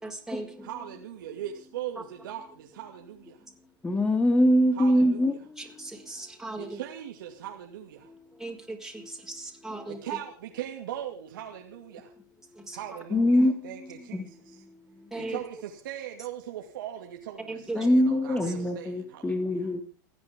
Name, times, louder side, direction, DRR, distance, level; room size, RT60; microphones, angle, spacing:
voice 1, 0.0-0.7 5.6-6.8 8.4-10.0 12.7-12.8 15.1-15.4 17.5-18.0, right 2 dB, 5° right, 1 dB, 5.2 m, -38 dB
voice 2, 0.6-3.4 4.7-5.4 6.6-8.1 9.9-12.1 12.7-14.6 15.2-19.7, right 11 dB, 75° right, 1 dB, 2.6 m, -40 dB
voice 3, 3.8-5.3 13.1-13.7 14.1-14.2 15.2-15.3 17.7-19.8, equal, 10° left, 6 dB, 2.7 m, -23 dB
28.5 x 10.5 x 3.8 m, 0.36 s
hypercardioid pair, 100°, 11 cm